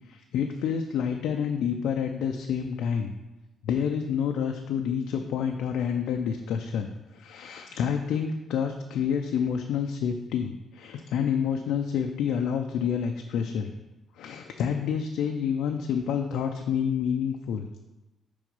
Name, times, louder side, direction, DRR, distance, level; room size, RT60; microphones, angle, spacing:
voice 1, 0.1-3.1 3.6-13.7 14.2-17.7, left 7 dB, 85° left, 4 dB, 0.4 m, -28 dB
6.1 x 3.9 x 5.2 m, 1.0 s
cardioid pair, 90°, 0 cm